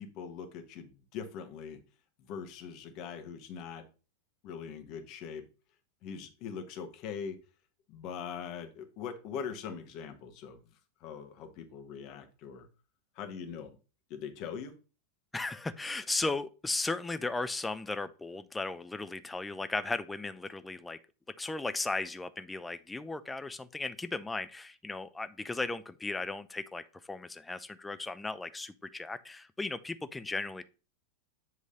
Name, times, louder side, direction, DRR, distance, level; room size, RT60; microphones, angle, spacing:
voice 1, 0.0-1.8 2.2-3.8 4.4-5.4 6.0-7.4 7.9-10.6 11.0-12.7 13.1-13.8 14.1-14.7, left 7 dB, 40° left, 6 dB, 1.1 m, -42 dB
voice 2, 15.3-21.0 21.4-30.6, left 3 dB, 10° left, 12 dB, 0.4 m, -36 dB
7.7 x 3.1 x 5.1 m, 0.34 s
figure-of-eight pair, 90°, 0 cm